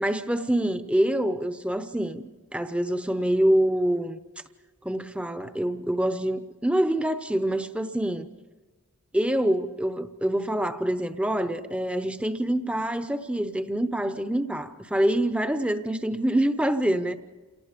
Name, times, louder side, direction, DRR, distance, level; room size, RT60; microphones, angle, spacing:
voice 1, 0.0-4.2 4.8-8.3 9.1-17.2, right 1 dB, 5° right, 0.8 m, -26 dB
28.5 x 18.5 x 5.2 m
head